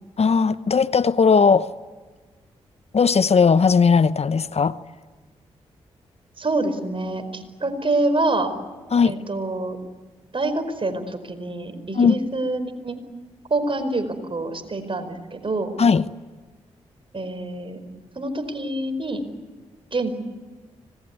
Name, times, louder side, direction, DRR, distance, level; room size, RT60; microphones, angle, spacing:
voice 1, 0.2-1.7 2.9-4.8 8.9-9.1 11.9-12.2 15.8-16.1, left 5 dB, 50° left, 15 dB, 0.9 m, -17 dB
voice 2, 6.4-8.5 9.1-9.8 10.3-13.0 13.5-15.7 17.1-17.8 18.1-19.2 19.9-20.2, right 2 dB, 40° right, 9 dB, 4.8 m, -26 dB
25.5 x 20.0 x 9.6 m, 1.4 s
supercardioid pair, 40°, 14 cm